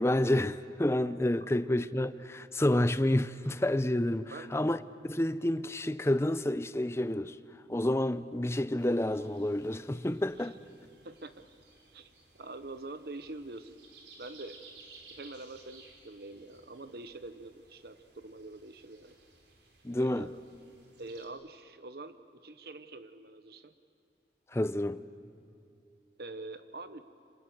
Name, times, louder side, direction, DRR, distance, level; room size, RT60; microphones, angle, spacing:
voice 1, 0.0-4.8 5.0-7.4 7.7-10.6 19.8-20.3 24.5-25.0, left 1 dB, 15° left, 0.6 m, -29 dB
sound 1, 8.8-21.3, right 3 dB, 80° right, 4.1 m, -58 dB
voice 2, 11.0-11.5 11.9-12.1 12.4-13.8 14.2-14.6 15.1-19.2 19.9-20.4 21.0-22.2 22.4-23.7 26.2-27.0, right 2 dB, 60° right, 0.9 m, -45 dB
28.5 x 26.0 x 7.9 m
head